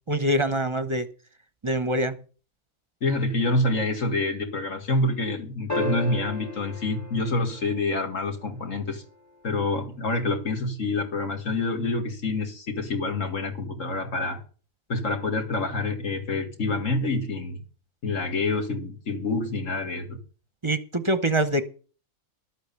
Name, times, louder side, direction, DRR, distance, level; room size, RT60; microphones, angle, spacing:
voice 1, 0.1-1.1 1.6-2.2 20.6-21.6, right 1 dB, 25° right, 0.8 m, -24 dB
voice 2, 3.0-9.0 9.4-14.4 14.9-17.6 18.0-20.2, left 2 dB, 65° left, 2.4 m, -27 dB
sound 1, 5.7-8.2 10.4-10.5, left 1 dB, 15° left, 1.2 m, -33 dB
12.0 x 8.2 x 6.9 m
omnidirectional pair, 1.4 m